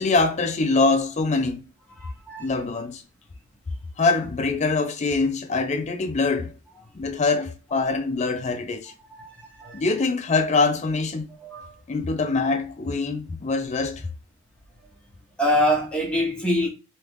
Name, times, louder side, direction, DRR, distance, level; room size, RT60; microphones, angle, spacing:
voice 1, 0.0-1.6 2.4-3.0 4.0-6.5 6.9-8.9 9.7-11.3 11.9-14.1, left 3 dB, 30° left, 0.4 m, -24 dB
voice 2, 2.0-2.5 7.8-7.9 9.1-9.8 11.4-11.8 12.8-13.0 15.4-16.7, left 1 dB, 5° left, 0.9 m, -25 dB
3.2 x 2.3 x 3.3 m
head